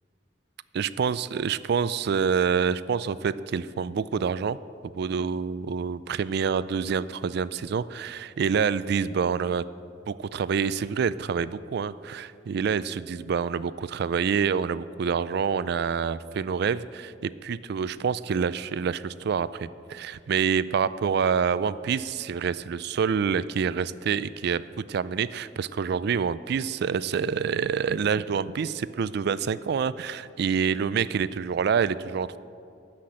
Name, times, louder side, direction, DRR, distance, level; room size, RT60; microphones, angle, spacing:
voice 1, 0.7-4.6 4.8-9.6 10.1-32.4, right 6 dB, 60° right, 17 dB, 0.4 m, -27 dB
13.0 x 5.9 x 8.6 m, 2.6 s
head